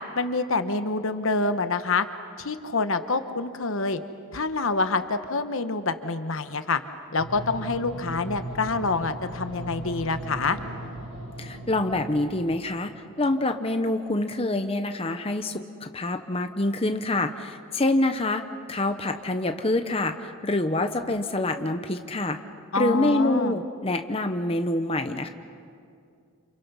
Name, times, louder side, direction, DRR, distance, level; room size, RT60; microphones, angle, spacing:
voice 1, 0.1-2.1 2.4-4.0 4.3-6.8 7.1-10.6 22.7-23.6, left 3 dB, 65° left, 9 dB, 1.1 m, -26 dB
sound 1, 7.2-12.6, right 1 dB, 60° right, 7.9 m, -38 dB
voice 2, 11.4-12.9 13.2-18.4 18.7-22.4 22.7-25.3, left 2 dB, 25° left, 7 dB, 0.9 m, -26 dB
30.0 x 28.0 x 5.6 m, 2.4 s
head